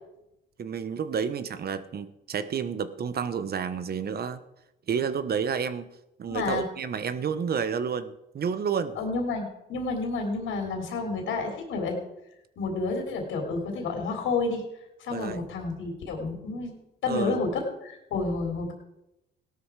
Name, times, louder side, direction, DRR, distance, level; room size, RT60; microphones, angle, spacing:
voice 1, 0.6-4.4 4.9-5.9 6.2-9.0 15.1-15.5 17.1-17.4, right 6 dB, 50° right, 13 dB, 1.2 m, -30 dB
voice 2, 6.3-6.7 9.0-12.0 12.6-14.6 15.0-16.7 17.0-18.7, left 3 dB, 80° left, 2 dB, 3.6 m, -30 dB
17.0 x 12.5 x 4.8 m, 0.88 s
cardioid pair, 90°, 20 cm